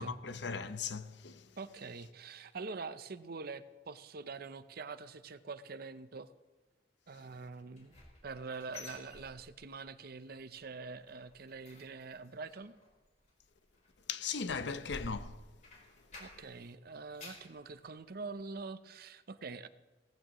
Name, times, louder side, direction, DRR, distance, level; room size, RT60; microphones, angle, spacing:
voice 1, 0.0-1.5 14.1-15.4, left 5 dB, 70° left, 0.7 m, -38 dB
voice 2, 1.6-6.3 7.1-8.0 8.2-12.7 16.2-19.7, right 4 dB, 55° right, 0.6 m, -45 dB
sound 1, 7.6-9.9 10.2-10.5 10.8-16.6 16.9-17.6 18.0-18.1 18.6-18.7, left 2 dB, 40° left, 4.4 m, -52 dB
17.5 x 15.0 x 3.1 m
head